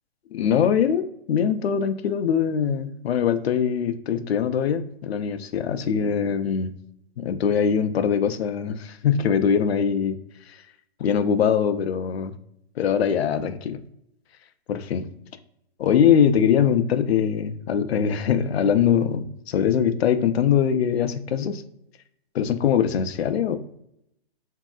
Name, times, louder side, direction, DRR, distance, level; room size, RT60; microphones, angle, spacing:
voice 1, 0.3-6.7 7.2-10.2 10.5-10.6 11.0-12.3 12.8-13.8 14.7-15.1 15.8-21.6 22.3-23.6, left 8 dB, 75° left, 10 dB, 0.5 m, -22 dB
3.0 x 2.7 x 2.3 m, 0.76 s
hypercardioid pair, 165°, 31 cm